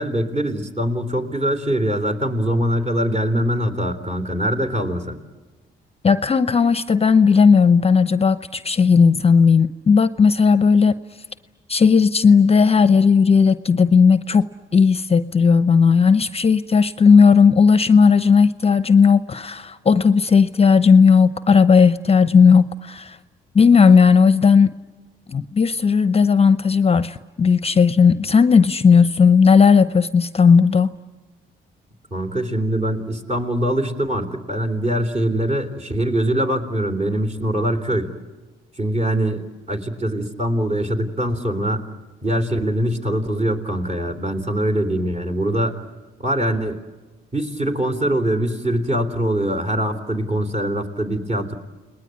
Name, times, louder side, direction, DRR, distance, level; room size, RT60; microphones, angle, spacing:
voice 1, 0.0-5.2 32.1-38.1 38.8-41.8 42.2-45.8 46.2-46.8 47.3-51.6, right 1 dB, 30° right, 5 dB, 3.6 m, -23 dB
voice 2, 6.0-10.9 11.7-23.2 23.5-24.7 25.3-30.9, left 5 dB, 30° left, 13 dB, 0.8 m, -15 dB
29.5 x 20.0 x 9.7 m, 1.3 s
cardioid pair, 90°, 20 cm